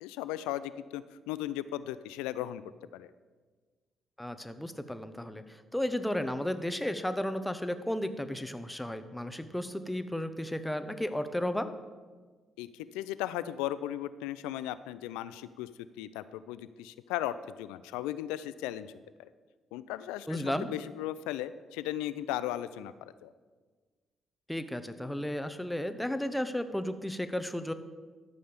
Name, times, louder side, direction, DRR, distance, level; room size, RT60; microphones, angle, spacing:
voice 1, 0.0-2.6 2.9-3.1 12.6-15.7 16.0-18.9 19.2-19.3 19.7-23.3, left 13 dB, 75° left, 15 dB, 0.4 m, -36 dB
voice 2, 4.2-11.7 20.3-20.7 24.5-27.7, left 1 dB, 5° left, 10 dB, 1.0 m, -33 dB
13.0 x 6.7 x 5.2 m, 1.4 s
hypercardioid pair, 45°, 0 cm